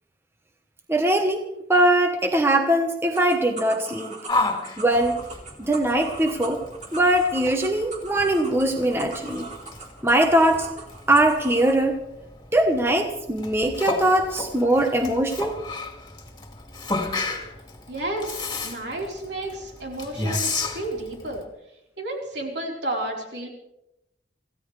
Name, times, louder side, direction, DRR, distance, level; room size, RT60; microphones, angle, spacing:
voice 1, 0.9-1.4 1.7-4.1 4.8-5.2 5.6-6.6 6.9-9.5 10.0-10.7 11.1-12.0 12.5-15.6, right 1 dB, 15° right, 4 dB, 1.1 m, -21 dB
sound 1, 3.1-11.8, right 3 dB, 40° right, 3.4 m, -40 dB
Yell, 4.3-21.4, left 2 dB, 20° left, 2.4 m, -33 dB
voice 2, 17.9-21.4 22.0-23.5, right 1 dB, 70° right, 0 dB, 4.3 m, -32 dB
26.0 x 16.0 x 3.4 m, 0.87 s
head